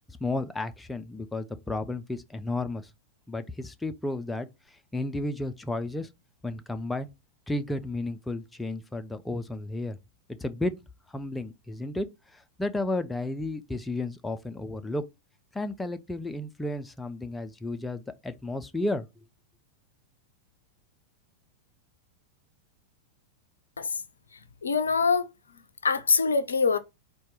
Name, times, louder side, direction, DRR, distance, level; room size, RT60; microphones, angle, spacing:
voice 1, 0.1-2.9 3.3-6.1 6.4-7.1 7.5-10.0 10.4-10.7 11.1-15.0 15.5-19.0, left 2 dB, 10° left, 0.4 m, -33 dB
voice 2, 24.6-25.3 25.8-26.8, left 5 dB, 75° left, 0.4 m, -24 dB
4.3 x 2.2 x 4.7 m
figure-of-eight pair, 90°, 0 cm